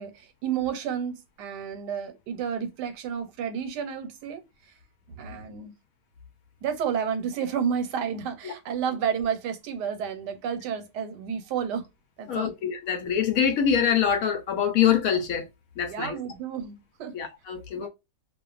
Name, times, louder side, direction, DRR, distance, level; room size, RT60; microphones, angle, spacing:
voice 1, 0.0-4.4 5.1-5.7 6.6-11.9 12.2-12.5 15.9-17.1 17.7-17.9, right 7 dB, 90° right, 1.3 m, -31 dB
voice 2, 12.3-15.4 15.8-16.2 17.1-17.9, left 8 dB, 70° left, 0.9 m, -24 dB
2.5 x 2.4 x 2.3 m
omnidirectional pair, 1.8 m